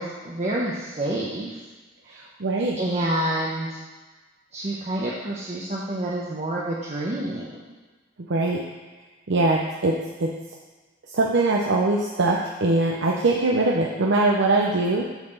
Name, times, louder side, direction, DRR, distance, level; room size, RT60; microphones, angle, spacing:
voice 1, 0.0-1.5 2.1-2.2 2.8-3.8 4.5-7.6, right 1 dB, 35° right, -5 dB, 0.9 m, -28 dB
voice 2, 2.1-2.8 8.3-8.6 9.3-10.3 11.1-15.1, right 2 dB, 65° right, -1 dB, 0.6 m, -22 dB
7.2 x 4.1 x 6.5 m, 1.3 s
head